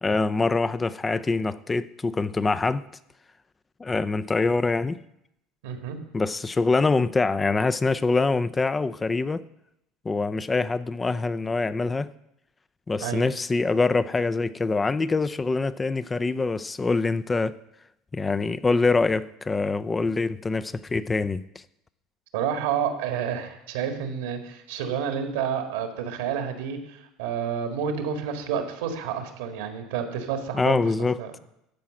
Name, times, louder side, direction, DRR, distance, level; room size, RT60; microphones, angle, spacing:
voice 1, 0.0-2.8 3.8-5.0 6.1-9.4 10.0-12.1 12.9-17.5 18.1-21.4 30.5-31.2, left 3 dB, 20° left, 0.5 m, -24 dB
voice 2, 5.6-6.0 13.0-13.2 22.3-30.8 31.2-31.3, right 8 dB, 85° right, 1.7 m, -29 dB
13.0 x 4.8 x 7.6 m
supercardioid pair, 95°, 0 cm